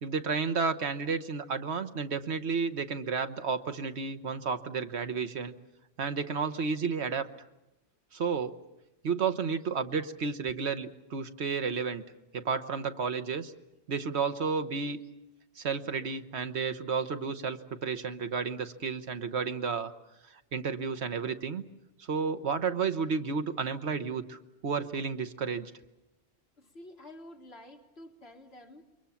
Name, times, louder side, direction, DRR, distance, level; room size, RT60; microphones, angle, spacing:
voice 1, 0.0-5.5 6.0-7.3 8.1-8.6 9.0-12.0 12.3-13.5 13.9-15.0 15.6-19.9 20.5-21.6 22.1-25.7, right 5 dB, 75° right, 10 dB, 1.3 m, -32 dB
voice 2, 26.6-28.8, left 1 dB, 65° left, 2 dB, 2.3 m, -50 dB
28.0 x 23.0 x 7.2 m, 0.95 s
omnidirectional pair, 1.1 m